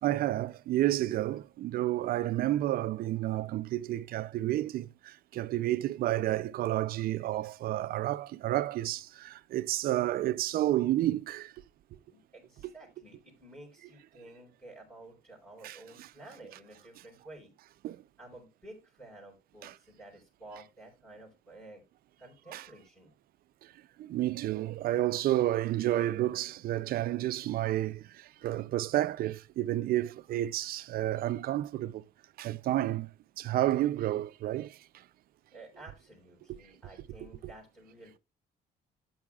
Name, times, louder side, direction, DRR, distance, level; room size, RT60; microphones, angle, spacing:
voice 1, 0.0-11.5 12.6-12.7 15.6-16.1 17.8-18.0 19.6-19.7 22.5-22.7 23.6-23.7 24.0-32.0 32.4-33.1 33.4-35.0 37.4-37.5, right 14 dB, 60° right, 0.5 m, -30 dB
voice 2, 12.1-17.5 18.2-21.8 22.2-23.1 35.5-38.2, right 2 dB, 10° left, 4.4 m, -52 dB
12.0 x 9.2 x 2.4 m
cardioid pair, 110°, 17 cm